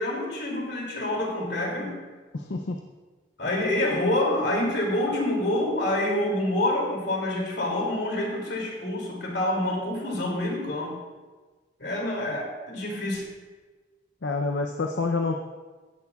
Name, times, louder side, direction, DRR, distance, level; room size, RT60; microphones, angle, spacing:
voice 1, 0.0-2.0 3.4-11.0 11.8-13.2, left 1 dB, 70° left, -1 dB, 2.8 m, -27 dB
voice 2, 2.3-2.8 14.2-15.4, left 3 dB, 85° left, 3 dB, 0.6 m, -27 dB
15.5 x 11.0 x 2.4 m, 1.3 s
head